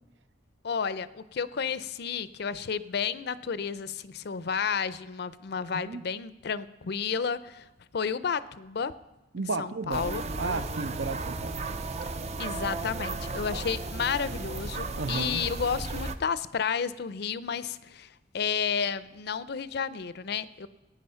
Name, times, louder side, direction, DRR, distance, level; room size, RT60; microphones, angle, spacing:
voice 1, 0.6-7.7 7.9-8.9 9.4-10.2 12.4-20.7, left 6 dB, 60° left, 15 dB, 0.5 m, -31 dB
voice 2, 9.3-10.0 10.4-11.6 15.0-15.4, right 3 dB, 70° right, 12 dB, 0.7 m, -33 dB
sound 1, 9.9-16.2, right 3 dB, 35° right, 0.6 m, -34 dB
17.0 x 9.4 x 5.6 m, 1.0 s
head